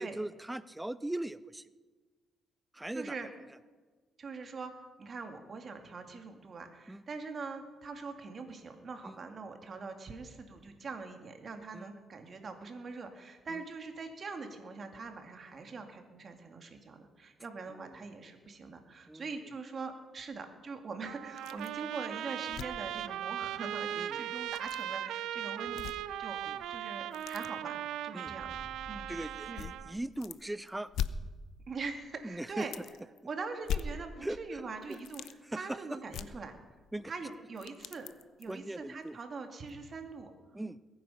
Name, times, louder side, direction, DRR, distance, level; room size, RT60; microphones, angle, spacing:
voice 1, 0.0-1.7 2.7-3.2 6.9-7.0 9.0-9.2 11.7-11.9 13.5-13.6 17.7-18.0 19.1-19.5 24.0-24.3 26.5-26.6 28.1-28.4 29.1-30.9 32.2-32.7 34.2-34.6 34.9-35.0 35.4-35.8 36.9-37.1 38.5-39.2 40.5-40.8, right 1 dB, 10° right, 16 dB, 0.5 m, -40 dB
voice 2, 2.9-3.3 4.2-4.7 5.0-26.4 26.7-28.5 28.8-29.1 29.5-29.6 31.7-32.7 33.2-35.2 35.5-36.6 37.1-38.1 38.4-40.3, right 4 dB, 45° right, 5 dB, 2.3 m, -43 dB
Trumpet, 21.1-30.0, right 11 dB, 85° right, 0.5 m, -38 dB
sound 1, 21.4-21.8 22.1-22.2 22.5-22.9 24.4-24.8 25.6-26.3 26.6-27.5 28.4-28.5 29.5-30.4 30.7-31.8 32.1-32.2 32.6-33.2 33.6-34.5 34.8-35.3 36.1-37.0 37.3-38.6 39.1-39.2 39.7-39.8, left 8 dB, 80° left, 0.6 m, -40 dB
sound 2, 28.3-31.0, left 1 dB, 15° left, 1.5 m, -53 dB
21.5 x 9.4 x 5.7 m, 1.4 s
cardioid pair, 90°, 0 cm